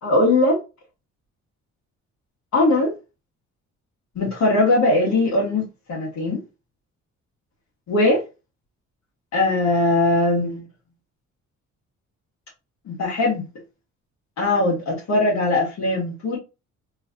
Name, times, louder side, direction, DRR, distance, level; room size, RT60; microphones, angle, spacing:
voice 1, 0.0-0.6 2.5-2.9 4.1-6.4 7.9-8.2 9.3-10.7 12.9-13.5 14.4-16.4, left 2 dB, 65° left, 1.5 m, -20 dB
3.2 x 3.1 x 2.5 m
cardioid pair, 90°, 30 cm